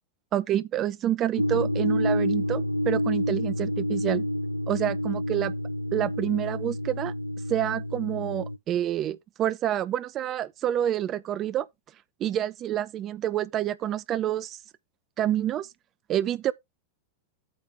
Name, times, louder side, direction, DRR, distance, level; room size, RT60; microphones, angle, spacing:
voice 1, 0.3-4.3 4.7-5.5 5.9-7.1 7.5-11.7 12.2-14.6 15.2-15.7 16.1-16.5, right 11 dB, 30° right, 0.6 m, -28 dB
sound 1, 1.4-8.6, equal, 85° right, 0.5 m, -28 dB
8.7 x 3.7 x 6.1 m
figure-of-eight pair, 90°, 0 cm